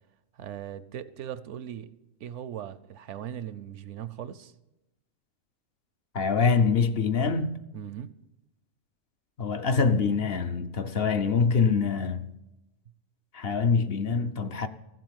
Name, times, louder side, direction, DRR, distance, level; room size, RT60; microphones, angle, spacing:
voice 1, 0.3-1.9 2.2-4.5 7.7-8.1, right 10 dB, 70° right, 0.9 m, -39 dB
voice 2, 6.1-7.6 9.4-12.3 13.3-14.7, left 5 dB, 55° left, 0.8 m, -25 dB
15.0 x 7.7 x 7.5 m
omnidirectional pair, 1.4 m